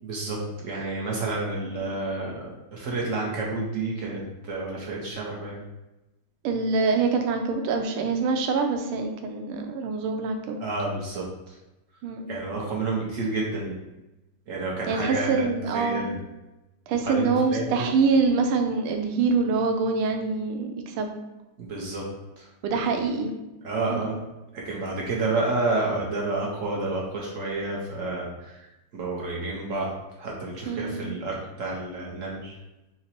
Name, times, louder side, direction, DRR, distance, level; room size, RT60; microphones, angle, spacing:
voice 1, 0.0-5.6 10.6-11.6 12.3-13.8 14.5-15.4 15.7-16.2 16.9-17.8 21.6-22.0 22.4-22.5 23.6-24.1 24.5-29.9 30.2-32.6, right 3 dB, 65° right, -3 dB, 0.7 m, -30 dB
voice 2, 6.4-10.6 12.0-12.3 14.9-16.1 16.9-21.1 22.6-23.3 23.9-24.1 30.7-31.2, right 4 dB, 85° right, 5 dB, 1.5 m, -25 dB
3.8 x 3.0 x 4.3 m, 0.98 s
omnidirectional pair, 2.4 m